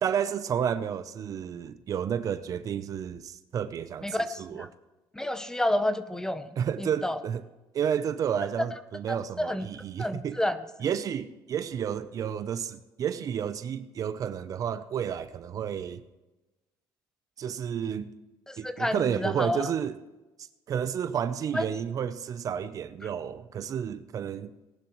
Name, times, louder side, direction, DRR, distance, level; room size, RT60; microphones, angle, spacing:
voice 1, 0.0-4.1 4.4-4.7 6.6-7.4 7.7-10.4 10.8-16.0 17.4-18.1 18.6-20.0 20.7-24.5, right 8 dB, 45° right, 0.7 m, -31 dB
voice 2, 4.0-4.7 5.1-6.5 6.8-7.2 9.1-9.7 10.0-10.6 18.5-19.6 21.5-21.6 23.0-23.1, left 1 dB, 5° left, 0.8 m, -30 dB
18.5 x 11.5 x 3.1 m
cardioid pair, 115°, 8 cm